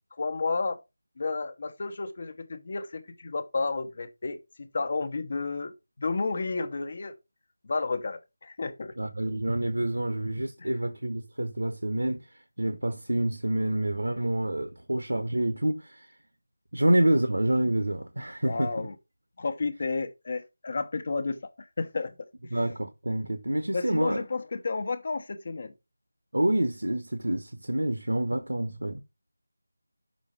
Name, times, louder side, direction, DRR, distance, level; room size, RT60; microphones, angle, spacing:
voice 1, 0.2-0.8 1.2-7.1 7.6-8.9 10.6-10.7 18.4-18.9 19.4-22.1 23.7-25.7, left 3 dB, 35° left, 1.1 m, -32 dB
voice 2, 9.0-12.3 12.6-16.1 16.7-18.7 22.5-24.2 26.3-29.0, right 1 dB, 70° right, 1.0 m, -27 dB
6.3 x 5.7 x 5.0 m
figure-of-eight pair, 165°, 0 cm